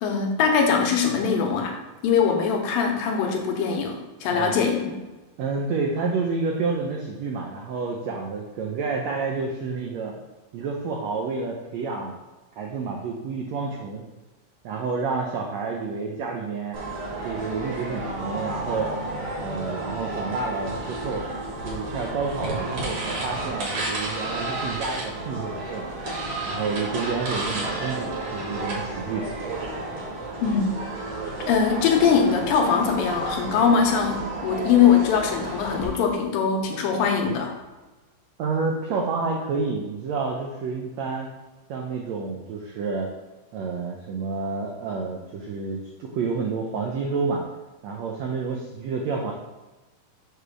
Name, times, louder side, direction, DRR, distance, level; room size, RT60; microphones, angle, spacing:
voice 1, 0.0-1.8 2.0-4.8 30.4-30.7 31.5-37.5, left 6 dB, 85° left, 2 dB, 2.7 m, -22 dB
voice 2, 4.3-4.6 5.4-10.2 10.5-12.1 12.6-14.0 14.6-16.8 17.2-19.0 19.4-21.3 21.6-25.9 26.5-29.3 38.4-41.3 41.7-43.1 43.5-47.4 47.8-49.3, right 4 dB, 85° right, 0 dB, 1.5 m, -29 dB
sound 1, 16.7-35.8, right 2 dB, 50° right, 2.0 m, -32 dB
7.0 x 3.3 x 6.0 m, 1.1 s
omnidirectional pair, 4.0 m